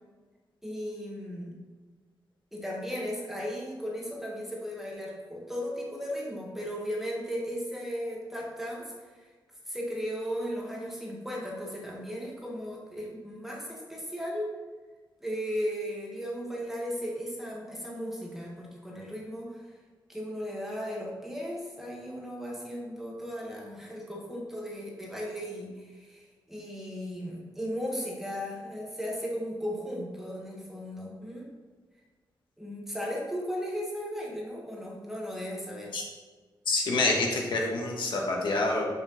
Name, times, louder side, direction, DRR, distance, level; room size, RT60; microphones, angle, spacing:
voice 1, 0.6-1.6 2.5-9.3 9.7-14.5 15.2-19.7 20.1-31.5 32.6-35.9, equal, 5° right, -3 dB, 1.1 m, -36 dB
voice 2, 36.7-38.9, left 2 dB, 75° left, -1 dB, 1.3 m, -27 dB
5.5 x 4.5 x 5.5 m, 1.4 s
wide cardioid pair, 180°, 8 cm